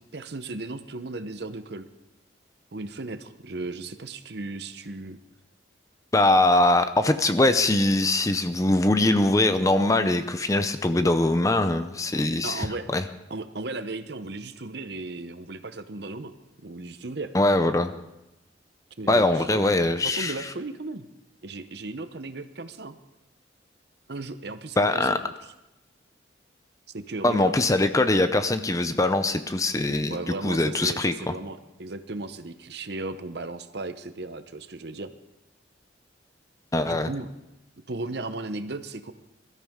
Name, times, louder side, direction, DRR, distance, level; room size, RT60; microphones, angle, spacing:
voice 1, 0.0-1.9 2.7-5.2 12.4-12.9 13.3-16.3 16.6-17.3 19.0-19.6 20.0-21.0 21.4-23.0 24.1-25.3 26.9-27.5 30.1-35.1 36.8-37.3 37.9-39.1, right 2 dB, 55° right, 10 dB, 0.8 m, -36 dB
voice 2, 6.1-12.7 12.9-13.0 17.3-17.9 19.1-20.5 24.8-25.2 27.2-30.2 30.4-31.1 36.7-37.1, left 2 dB, 15° left, 10 dB, 0.6 m, -22 dB
22.0 x 13.5 x 3.7 m, 0.93 s
head